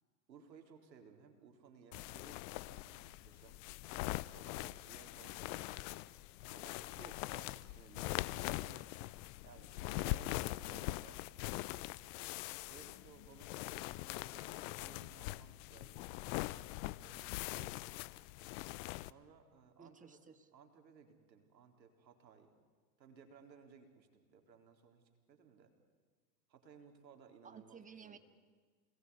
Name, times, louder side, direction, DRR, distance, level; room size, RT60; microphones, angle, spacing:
voice 1, 0.3-3.6 4.2-6.0 6.4-7.1 7.5-8.7 9.4-11.2 12.7-16.2 17.0-18.0 19.0-20.2 20.5-22.6 23.0-25.7 26.5-28.2, right 6 dB, 80° right, 5 dB, 4.0 m, -61 dB
sound 1, 1.9-19.1, left 19 dB, 50° left, 0.8 m, -43 dB
voice 2, 4.5-4.9 7.0-7.7 8.6-8.9 9.8-10.0 19.8-20.5 27.4-28.2, right 5 dB, 15° right, 9 dB, 1.9 m, -57 dB
28.0 x 20.0 x 9.7 m, 1.5 s
hypercardioid pair, 100°, 50 cm